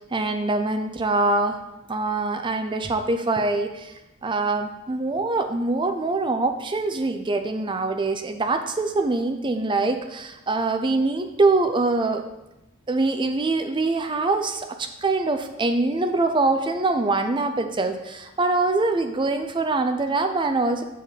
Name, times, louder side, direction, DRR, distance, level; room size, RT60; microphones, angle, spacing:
voice 1, 0.0-1.6 1.9-3.9 4.2-12.2 12.9-20.8, right 3 dB, 25° right, 7 dB, 0.5 m, -24 dB
7.5 x 6.8 x 4.1 m, 0.96 s
head